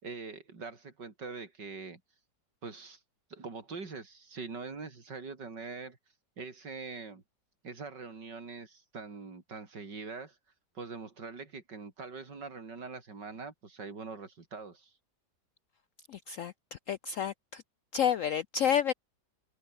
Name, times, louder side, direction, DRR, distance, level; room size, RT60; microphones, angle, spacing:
voice 1, 0.0-2.0 2.6-3.0 3.3-6.0 6.4-7.2 7.6-10.4 10.7-14.9, right 4 dB, 70° right, 4.0 m, -43 dB
voice 2, 16.1-17.6 17.9-18.9, left 8 dB, 70° left, 0.7 m, -30 dB
omnidirectional pair, 1.9 m